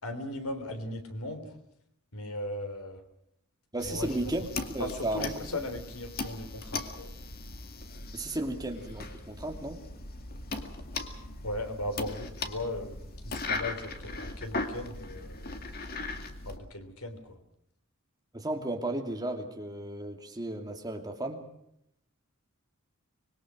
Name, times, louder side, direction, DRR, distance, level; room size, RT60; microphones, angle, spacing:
voice 1, 0.0-1.5 2.1-3.0 3.8-4.1 4.8-7.1 11.4-13.0 13.2-15.6 16.5-17.4, left 1 dB, 90° left, 7 dB, 3.6 m, -37 dB
voice 2, 3.7-5.3 8.1-9.8 18.3-21.4, right 1 dB, 20° right, 3 dB, 2.6 m, -34 dB
sound 1, 3.8-16.6, left 3 dB, 45° left, 2.2 m, -39 dB
25.5 x 21.5 x 6.3 m, 0.76 s
head